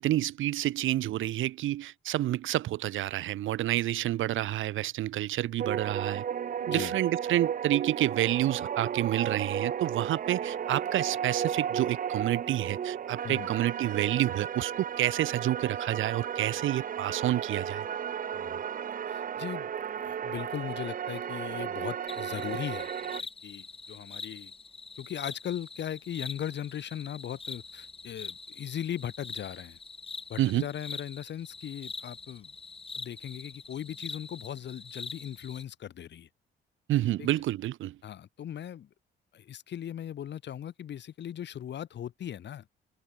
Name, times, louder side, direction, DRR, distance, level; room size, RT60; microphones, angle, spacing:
voice 1, 0.0-6.2 6.6-17.8 30.4-30.6 36.9-38.0, right 14 dB, 80° right, 1.6 m, -29 dB
sound 1, 5.6-23.2, right 8 dB, 45° right, 0.7 m, -34 dB
voice 2, 19.1-22.9 23.2-24.5 25.0-29.8 30.3-32.5 32.9-36.3 37.2-37.3 38.0-38.9 39.3-42.6, left 10 dB, 65° left, 2.3 m, -38 dB
sound 2, 22.1-35.6, left 4 dB, 30° left, 3.0 m, -44 dB
cardioid pair, 90°, 20 cm